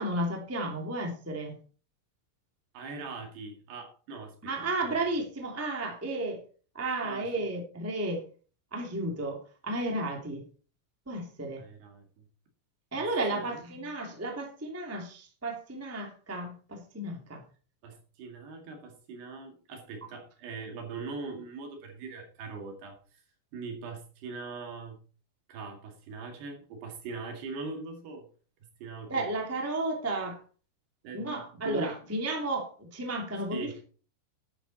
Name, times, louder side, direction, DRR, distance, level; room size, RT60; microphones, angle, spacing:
voice 1, 0.0-1.5 4.4-6.4 6.7-8.2 8.7-10.4 11.0-11.6 12.9-17.4 29.1-30.4 31.1-33.8, right 2 dB, 5° right, 1 dB, 1.3 m, -33 dB
voice 2, 2.7-4.5 4.8-5.0 7.0-7.3 11.6-12.3 12.9-13.8 17.8-23.2 23.5-25.0 25.5-28.3 28.8-29.3 31.0-31.9 33.5-33.7, right 4 dB, 65° right, 3 dB, 4.1 m, -41 dB
12.0 x 8.9 x 4.2 m, 0.38 s
omnidirectional pair, 5.4 m